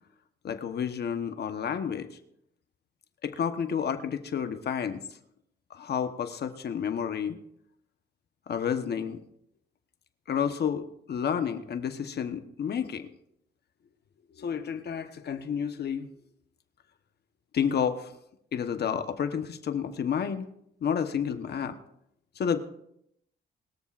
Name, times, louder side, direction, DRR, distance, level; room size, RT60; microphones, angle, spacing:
voice 1, 0.4-2.1 3.2-5.0 5.7-7.4 8.5-9.2 10.3-10.8 11.1-13.1 14.4-16.1 17.5-18.1 18.5-20.5 20.8-21.8 22.4-22.6, left 7 dB, 55° left, 9 dB, 1.1 m, -30 dB
22.5 x 13.0 x 2.5 m, 0.74 s
cardioid pair, 90°, 20 cm